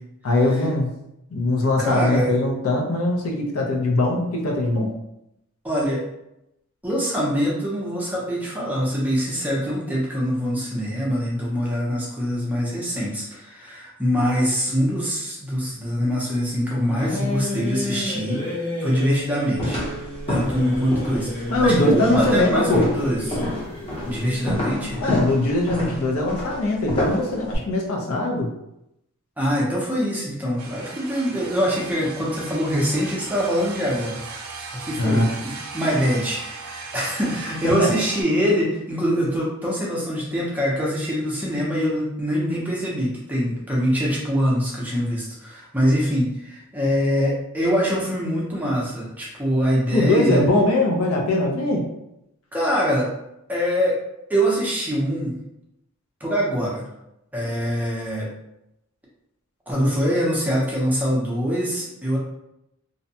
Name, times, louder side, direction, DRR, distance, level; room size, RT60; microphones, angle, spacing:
voice 1, 0.2-0.9 1.3-4.9 21.5-22.9 25.0-28.5 35.0-35.4 37.6-37.9 49.9-51.8, left 2 dB, 70° left, 0 dB, 0.5 m, -21 dB
voice 2, 1.8-2.3 5.6-6.0 6.8-19.8 20.3-23.4 24.0-25.0 29.4-34.2 34.8-50.4 52.5-53.1 53.5-54.0 54.3-55.4 56.2-56.8 57.3-58.3 59.7-62.2, equal, 10° right, -5 dB, 0.5 m, -24 dB
sound 1, 16.9-24.6, left 2 dB, 45° left, 1.1 m, -31 dB
sound 2, 19.6-27.6, left 1 dB, 25° left, 0.7 m, -29 dB
sound 3, 30.6-38.2, right 4 dB, 85° right, 0.4 m, -37 dB
2.6 x 2.1 x 2.7 m, 0.84 s
head